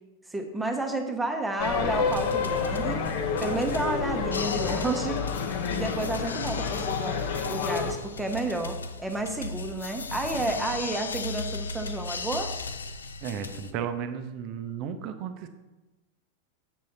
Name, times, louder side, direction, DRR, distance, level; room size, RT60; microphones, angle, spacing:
voice 1, 0.3-3.1 3.4-5.3 5.7-7.2 7.5-12.5, right 2 dB, 10° right, 4 dB, 0.9 m, -31 dB
sound 1, 1.6-7.9, left 6 dB, 50° left, 0.8 m, -29 dB
sound 2, 2.0-13.7, left 3 dB, 70° left, 0.4 m, -37 dB
voice 2, 13.2-15.5, right 8 dB, 40° right, 9 dB, 0.7 m, -34 dB
7.3 x 6.3 x 4.2 m, 1.1 s
figure-of-eight pair, 90°, 0 cm